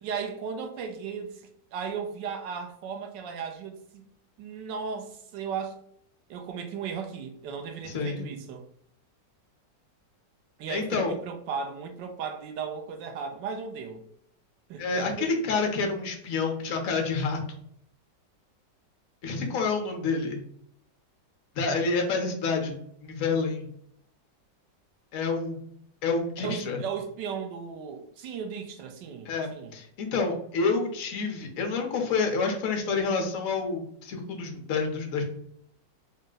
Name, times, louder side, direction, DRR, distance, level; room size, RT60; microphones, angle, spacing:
voice 1, 0.0-1.4 1.7-4.1 4.4-5.8 6.3-8.7 10.6-14.0 14.7-15.3 26.4-29.7, right 6 dB, 90° right, 1.3 m, -36 dB
voice 2, 7.8-8.3 10.7-11.1 14.8-17.4 19.2-20.4 21.5-23.7 25.1-25.6 26.0-26.8 29.3-35.2, left 4 dB, 60° left, 1.1 m, -28 dB
4.0 x 2.1 x 3.7 m
omnidirectional pair, 1.9 m